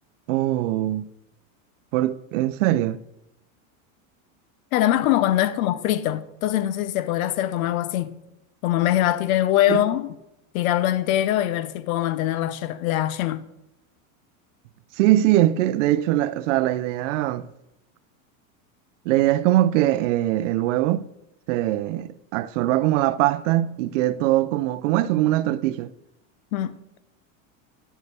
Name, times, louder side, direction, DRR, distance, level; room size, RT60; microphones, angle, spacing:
voice 1, 0.3-1.1 1.9-3.0 9.7-9.8 15.0-17.5 19.1-21.1 21.5-25.9, right 14 dB, 60° right, 0.5 m, -22 dB
voice 2, 4.7-8.2 8.6-10.1 10.5-13.4 26.5-26.7, left 13 dB, 75° left, 0.7 m, -23 dB
10.0 x 6.5 x 3.3 m
supercardioid pair, 160°, 42 cm